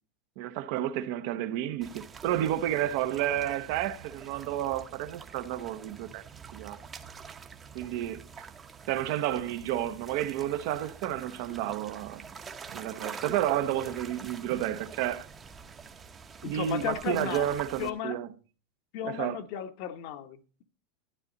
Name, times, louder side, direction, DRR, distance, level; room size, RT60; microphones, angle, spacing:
voice 1, 0.4-6.2 6.5-6.8 7.7-8.2 8.9-12.2 12.7-15.3 16.4-18.3 19.0-19.4, right 12 dB, 55° right, 0.9 m, -31 dB
sound 1, 1.8-17.9, right 5 dB, 20° right, 0.9 m, -46 dB
voice 2, 16.4-18.2 18.9-20.6, left 10 dB, 50° left, 1.1 m, -35 dB
12.5 x 9.4 x 4.0 m
supercardioid pair, 155°, 0 cm